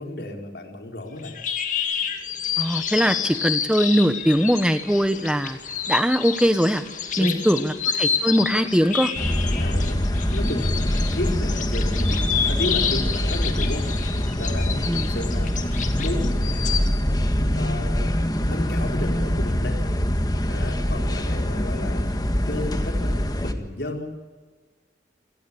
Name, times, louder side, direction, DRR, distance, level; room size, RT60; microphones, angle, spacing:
voice 1, 0.0-1.3 7.2-7.3 9.6-16.6 17.4-18.1 18.4-19.8 20.5-22.1 22.5-24.1, left 1 dB, 70° left, 3 dB, 4.3 m, -33 dB
sound 1, 1.2-16.9, left 7 dB, 45° left, 2.4 m, -29 dB
voice 2, 2.6-5.6 5.9-6.8 7.2-7.7 8.0-9.1 14.9-15.1, equal, 5° right, 10 dB, 1.2 m, -21 dB
sound 2, 9.1-23.5, equal, 20° left, 1.6 m, -24 dB
28.5 x 19.0 x 8.7 m, 1.4 s
head